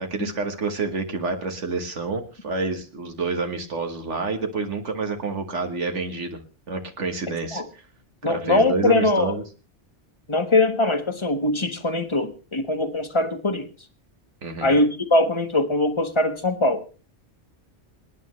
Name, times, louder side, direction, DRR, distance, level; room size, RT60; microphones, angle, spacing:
voice 1, 0.0-6.4 6.7-7.8 8.2-9.4 14.4-14.7, right 4 dB, 75° right, 5 dB, 1.7 m, -28 dB
voice 2, 8.2-9.3 10.3-13.7 14.6-16.8, left 2 dB, 25° left, 7 dB, 1.3 m, -22 dB
27.5 x 9.5 x 3.1 m, 0.33 s
omnidirectional pair, 1.2 m